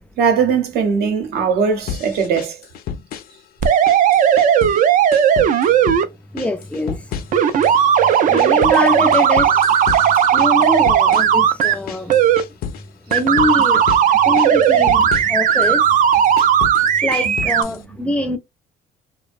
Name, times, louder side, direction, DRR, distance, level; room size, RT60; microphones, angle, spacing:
voice 1, 0.2-2.6 15.0-15.1 17.2-17.3, right 6 dB, 65° right, 0.8 m, -19 dB
sound 1, 1.9-3.4 3.6-4.8 5.1-6.0 6.4-7.8 8.1-12.8 13.1-14.1 14.4-15.7 16.1-17.8, left 8 dB, 60° left, 0.4 m, -31 dB
sound 2, 3.6-6.0 7.3-11.7 12.1-12.4 13.1-17.6, right 9 dB, 50° right, 0.4 m, -15 dB
voice 2, 6.3-7.1 7.6-9.6 10.3-12.2 13.1-15.9 17.0-18.4, left 1 dB, 5° left, 0.5 m, -24 dB
2.5 x 2.0 x 2.4 m
cardioid pair, 110°, 17 cm